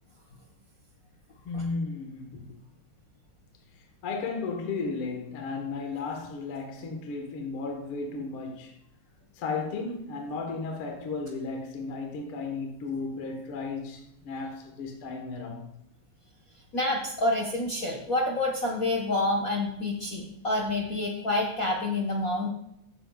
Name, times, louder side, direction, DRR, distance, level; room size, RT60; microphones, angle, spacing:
voice 1, 1.4-2.6 4.0-8.8 9.3-15.7, left 4 dB, 55° left, 2.0 m, -34 dB
voice 2, 16.7-22.5, left 2 dB, 80° left, 0.7 m, -28 dB
14.5 x 9.8 x 2.3 m
omnidirectional pair, 3.4 m